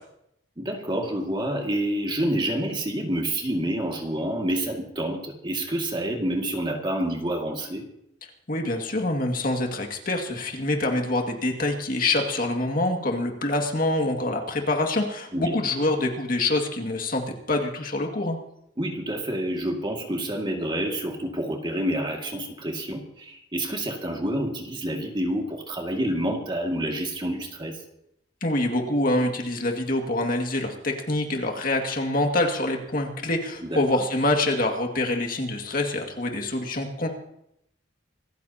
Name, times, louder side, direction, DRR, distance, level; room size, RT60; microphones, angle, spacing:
voice 1, 0.6-7.9 15.3-15.5 18.8-27.8 33.6-33.8, right 1 dB, 25° right, 1 dB, 2.2 m, -28 dB
voice 2, 8.5-18.4 28.4-37.1, left 2 dB, 50° left, 2 dB, 2.1 m, -25 dB
26.0 x 14.5 x 2.9 m, 0.78 s
head